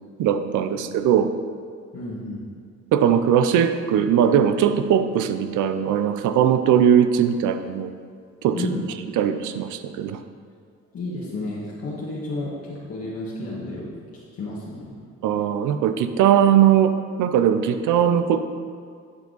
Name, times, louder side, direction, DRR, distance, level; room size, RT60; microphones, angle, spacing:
voice 1, 0.2-1.3 2.9-7.9 8.4-8.6 9.2-10.2 15.2-16.9 17.2-18.4, right 9 dB, 80° right, 9 dB, 0.5 m, -19 dB
voice 2, 1.9-2.6 8.5-8.8 10.9-13.9 14.3-14.9, left 2 dB, 50° left, -8 dB, 1.6 m, -31 dB
9.6 x 4.6 x 4.0 m, 2.2 s
cardioid pair, 90°, 30 cm